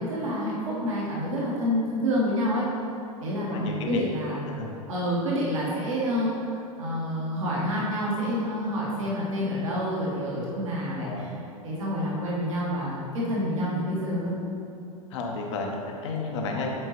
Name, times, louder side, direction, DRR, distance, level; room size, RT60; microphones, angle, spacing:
voice 1, 0.0-2.7 3.2-4.5 4.9-11.3 11.6-14.4, equal, 60° right, -6 dB, 1.3 m, -28 dB
voice 2, 3.5-4.1 4.5-4.7 11.0-11.4 15.1-15.7 16.0-16.7, left 4 dB, 50° left, 0 dB, 0.9 m, -32 dB
7.9 x 4.5 x 3.0 m, 2.7 s
figure-of-eight pair, 90°, 19 cm